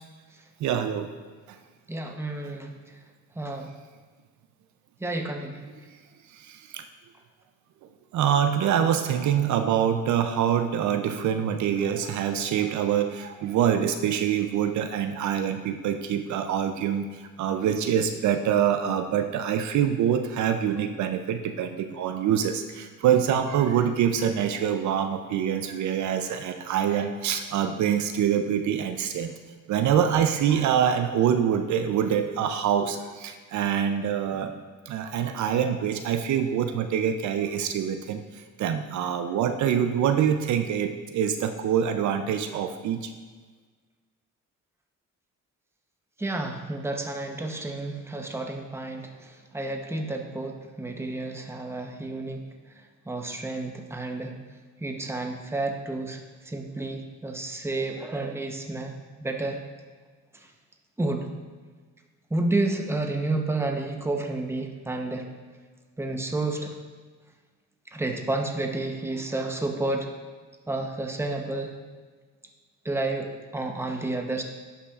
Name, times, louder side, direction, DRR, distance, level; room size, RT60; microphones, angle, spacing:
voice 1, 0.6-1.1 6.4-6.8 8.1-17.1 17.4-29.3 29.7-34.5 34.9-38.2 38.6-43.1, right 9 dB, 70° right, 8 dB, 0.5 m, -25 dB
voice 2, 1.9-2.7 3.4-3.7 5.0-5.6 46.2-52.4 53.1-54.3 54.8-56.2 56.5-58.9 59.2-59.6 61.0-61.3 62.3-65.3 66.0-66.7 67.9-70.1 70.7-71.7 72.8-74.4, right 2 dB, 10° right, 3 dB, 0.8 m, -30 dB
11.5 x 5.6 x 2.4 m, 1.4 s
cardioid pair, 90°, 30 cm